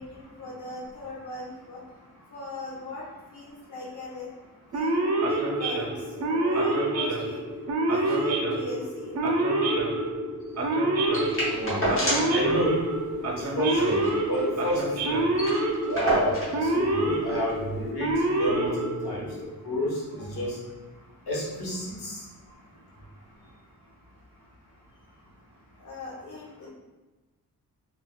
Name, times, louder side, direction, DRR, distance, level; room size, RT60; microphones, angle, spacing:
voice 1, 0.0-1.8 2.3-4.3 4.7-7.4 7.9-9.2 10.4-10.6 20.2-20.4 25.8-26.7, left 1 dB, 50° left, -5 dB, 0.7 m, -40 dB
Male speech man speaking / Siren, 4.7-19.5, right 1 dB, 45° right, 0.4 m, -27 dB
sound 1, 11.1-12.4 12.7-12.8 13.1-13.3 13.7-14.8 15.1-15.2 15.3-16.6 17.5-17.6, equal, 35° left, 1.0 m, -29 dB
voice 2, 11.5-11.9 12.3-12.7 13.3-14.0 14.3-15.2 15.9-18.1 18.4-18.7 19.0-19.3 19.6-20.6 21.3-22.2, equal, 80° left, -4 dB, 1.0 m, -29 dB
3.4 x 2.3 x 2.2 m, 1.2 s
wide cardioid pair, 150°, 38 cm